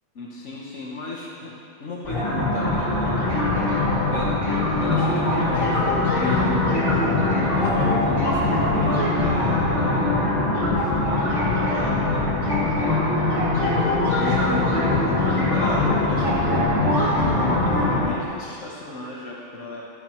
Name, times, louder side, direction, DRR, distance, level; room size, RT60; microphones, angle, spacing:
voice 1, 0.1-1.5 1.8-3.5 4.1-4.3 4.8-10.2 10.5-13.3 14.2-19.8, left 2 dB, 85° left, -5 dB, 1.4 m, -36 dB
sound 1, 2.0-18.0, left 2 dB, 25° left, 2.8 m, -22 dB
21.0 x 7.6 x 3.0 m, 2.7 s
omnidirectional pair, 1.2 m